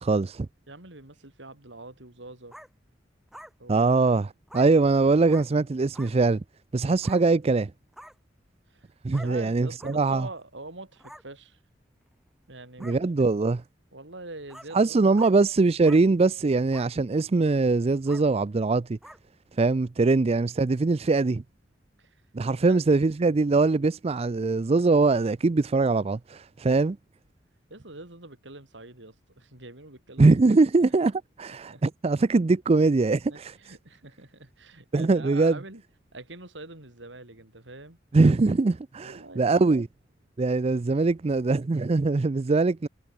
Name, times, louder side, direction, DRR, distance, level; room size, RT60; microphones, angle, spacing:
voice 1, 0.0-0.5 3.7-6.4 6.7-7.7 9.0-10.3 12.8-13.6 14.7-19.0 19.6-21.4 22.3-27.0 30.2-33.5 34.9-35.6 38.1-39.9 40.4-42.9, right 3 dB, 35° right, 0.4 m, -22 dB
voice 2, 0.7-2.6 3.6-3.9 8.7-11.6 12.5-13.0 13.9-15.3 22.0-22.2 22.5-22.8 27.7-30.5 31.5-31.8 33.3-35.8 36.1-38.0 39.0-39.7, right 2 dB, 75° right, 4.1 m, -44 dB
sound 1, 2.5-2.7 3.3-3.5 4.5-4.7 5.3-5.5 5.9-6.1 7.0-7.2 7.9-8.1 9.1-9.3 9.8-9.9 11.0-11.2 12.1-12.2 12.8-13.0 13.5-13.6 14.5-14.7 15.1-15.3 15.8-16.0 16.7-16.9 17.4-17.6 18.1-18.2 19.0-19.2, equal, ahead, 7.3 m, -46 dB
head